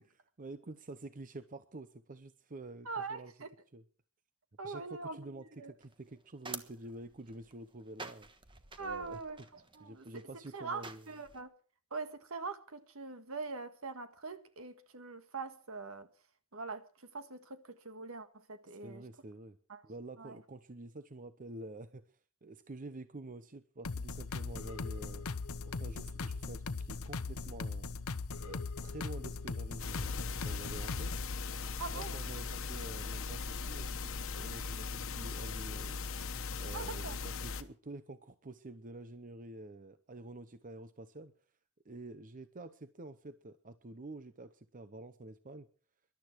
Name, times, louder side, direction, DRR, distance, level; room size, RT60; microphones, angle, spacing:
voice 1, 0.4-3.3 3.7-3.8 4.6-8.3 8.8-9.2 9.8-11.1 18.6-19.6 19.8-25.3 25.7-27.9 28.4-31.1 31.9-36.0 36.6-41.3 41.8-45.7, right 2 dB, 40° right, 0.8 m, -48 dB
voice 2, 2.8-3.5 4.6-5.7 8.8-10.1 10.5-11.5 11.9-16.1 16.5-19.0 19.7-19.8 20.2-20.4 31.8-32.2 36.7-37.2, right 4 dB, 70° right, 1.6 m, -43 dB
sound 1, 5.8-11.4, right 4 dB, 25° right, 1.3 m, -50 dB
sound 2, 23.8-31.4, left 4 dB, 85° left, 0.8 m, -39 dB
sound 3, 29.8-37.6, left 4 dB, 65° left, 1.2 m, -39 dB
20.5 x 12.0 x 4.6 m
head